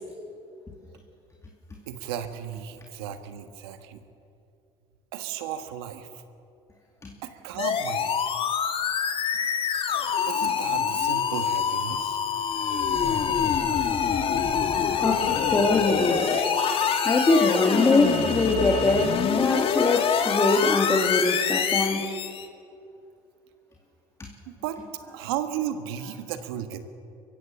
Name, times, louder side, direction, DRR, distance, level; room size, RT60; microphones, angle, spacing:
voice 1, 1.9-4.0 5.1-6.1 7.2-8.2 10.1-12.2 13.6-13.9 24.5-24.8 25.1-26.9, right 10 dB, 90° right, 9 dB, 1.5 m, -34 dB
sound 1, 7.6-22.5, left 7 dB, 45° left, 1.7 m, -25 dB
sound 2, 10.6-11.0 13.9-19.0, left 3 dB, 70° left, 7.0 m, -37 dB
voice 2, 14.4-16.4 17.0-22.1 24.2-24.3, left 2 dB, 25° left, 1 dB, 2.4 m, -23 dB
23.5 x 15.5 x 7.7 m, 2.6 s
supercardioid pair, 85°, 12 cm